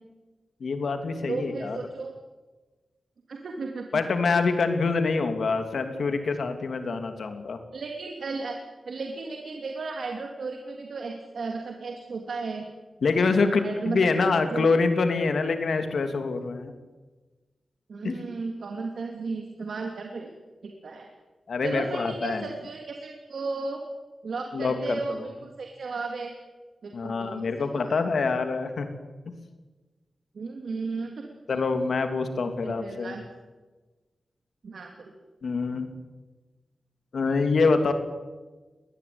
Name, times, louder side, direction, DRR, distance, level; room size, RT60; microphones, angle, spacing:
voice 1, 0.6-1.8 3.9-7.6 13.0-16.7 18.0-18.2 21.5-22.4 24.5-25.0 26.9-28.9 31.5-33.1 35.4-35.9 37.1-37.9, left 4 dB, 70° left, 7 dB, 2.8 m, -25 dB
voice 2, 1.3-2.1 3.3-3.9 4.3-4.4 7.7-8.6 8.8-12.7 13.3-14.0 14.5-14.6 17.9-20.3 20.6-21.1 21.6-23.8 24.2-26.3 26.8-28.0 30.3-31.2 31.5-31.6 32.6-33.2 34.6-35.1, right 4 dB, 70° right, 3 dB, 2.9 m, -34 dB
22.5 x 19.0 x 9.7 m, 1.3 s
wide cardioid pair, 125°, 0 cm